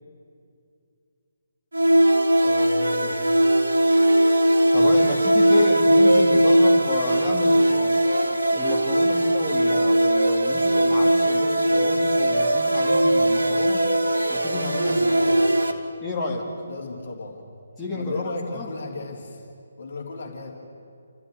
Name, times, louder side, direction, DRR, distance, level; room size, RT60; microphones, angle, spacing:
sound 1, 1.7-15.7, right 1 dB, 70° right, 1.8 m, -19 dB
voice 1, 2.3-3.2 14.8-15.8 16.7-17.4 17.9-19.4 19.8-20.5, left 2 dB, 50° left, 0 dB, 3.3 m, -34 dB
voice 2, 4.7-8.0 8.5-13.9 14.3-15.0 16.0-16.5 17.8-18.7, left 2 dB, 10° left, -6 dB, 3.1 m, -30 dB
29.0 x 14.0 x 9.6 m, 2.3 s
figure-of-eight pair, 140°, 0 cm